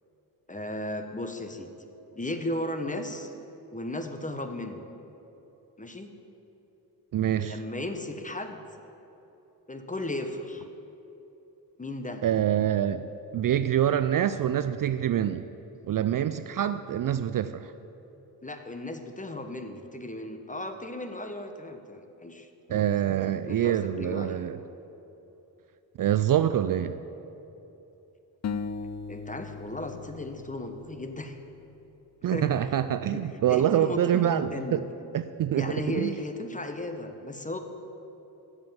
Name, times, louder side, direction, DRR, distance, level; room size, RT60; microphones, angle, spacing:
voice 1, 0.5-1.7 2.1-3.3 3.7-4.8 5.8-6.1 7.3-8.6 9.7-10.7 11.8-12.2 16.5-16.6 18.4-22.9 23.5-24.4 29.1-31.4 32.3-32.5 33.1-34.8 35.5-37.6, left 1 dB, 15° left, 7 dB, 1.1 m, -35 dB
voice 2, 7.1-7.6 12.2-13.1 13.3-15.4 15.9-17.7 22.7-24.6 26.0-27.0 32.2-34.8 35.1-36.1, right 10 dB, 50° right, 12 dB, 0.4 m, -26 dB
sound 1, 28.4-31.7, left 5 dB, 40° left, 0.5 m, -38 dB
9.8 x 7.5 x 7.0 m, 3.0 s
supercardioid pair, 50°, 44 cm